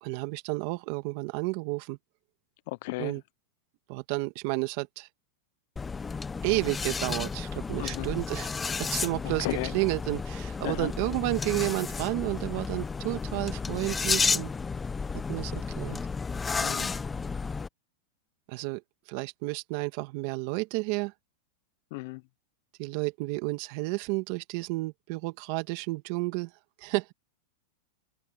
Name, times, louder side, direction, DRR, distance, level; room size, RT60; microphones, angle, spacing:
voice 1, 0.0-2.0 3.0-3.2 3.9-5.1 6.4-14.5 15.3-16.0 18.5-18.8 19.1-21.1 22.8-26.5 26.8-27.1, right 23 dB, 50° right, 1.7 m, -31 dB
voice 2, 2.7-3.1 7.8-8.1 9.4-9.7 10.6-10.9 16.6-16.9 21.9-22.2, left 22 dB, 55° left, 0.6 m, -34 dB
sound 1, 5.8-17.7, left 4 dB, 15° left, 0.8 m, -32 dB
supercardioid pair, 140°, 0 cm